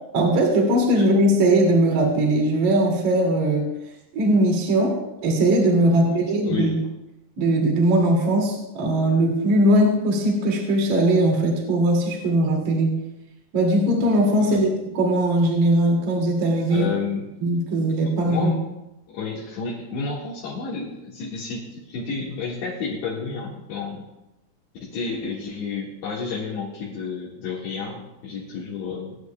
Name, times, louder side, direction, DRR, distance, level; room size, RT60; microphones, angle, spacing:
voice 1, 0.1-3.7 4.1-5.0 5.2-6.8 7.4-12.9 13.5-16.9 17.4-18.5, right 1 dB, 45° right, -1 dB, 3.1 m, -20 dB
voice 2, 6.4-6.8 14.4-14.7 16.7-17.2 18.1-18.6 19.1-24.0 24.8-29.2, left 5 dB, 65° left, -6 dB, 3.8 m, -31 dB
24.5 x 9.7 x 2.3 m, 0.92 s
omnidirectional pair, 5.9 m